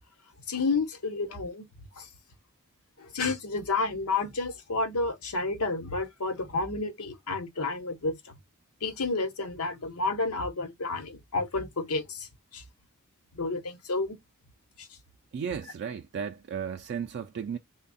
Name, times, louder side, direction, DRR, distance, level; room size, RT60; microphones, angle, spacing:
voice 1, 0.5-1.7 2.0-2.1 3.0-8.2 8.8-12.6 13.3-14.2 14.8-14.9, left 3 dB, 90° left, 0.9 m, -30 dB
voice 2, 15.3-17.6, right 7 dB, 50° right, 0.3 m, -34 dB
3.4 x 2.2 x 4.0 m
head